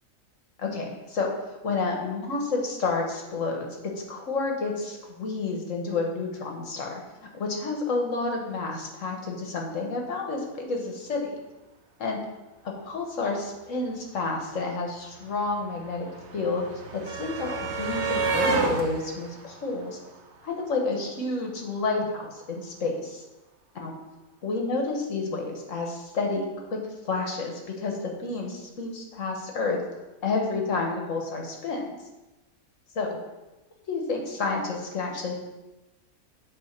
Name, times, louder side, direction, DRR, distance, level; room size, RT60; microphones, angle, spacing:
voice 1, 0.6-1.3 1.6-7.0 7.4-11.4 12.0-12.2 12.6-16.1 16.3-20.0 20.4-23.2 23.8-23.9 24.4-29.8 30.2-31.9 32.9-33.2 33.9-35.4, left 3 dB, 60° left, 1 dB, 1.4 m, -30 dB
sound 1, 14.3-14.4 14.5-20.7 21.9-22.0 22.3-22.4, right 4 dB, 60° right, 0.8 m, -31 dB
9.0 x 3.1 x 5.7 m, 1.1 s
omnidirectional pair, 1.6 m